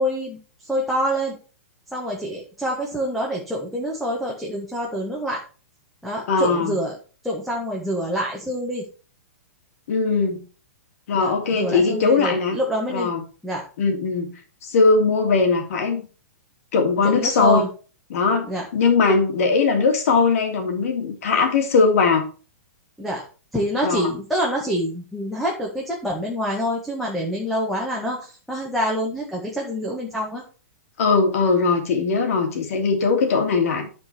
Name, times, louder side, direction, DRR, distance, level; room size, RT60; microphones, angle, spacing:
voice 1, 0.0-1.4 1.9-5.4 6.0-7.0 7.2-8.8 11.1-13.1 13.4-13.6 17.0-17.7 18.4-18.7 23.0-23.2 23.5-30.4, equal, ahead, -3 dB, 1.7 m, -26 dB
voice 2, 6.3-6.7 9.9-10.4 11.1-12.6 12.9-13.2 13.8-14.3 14.6-16.0 16.7-17.6 18.1-22.3 23.8-24.1 31.0-33.9, left 4 dB, 60° left, 3 dB, 3.0 m, -20 dB
9.3 x 5.3 x 4.6 m, 0.36 s
hypercardioid pair, 155°, 9 cm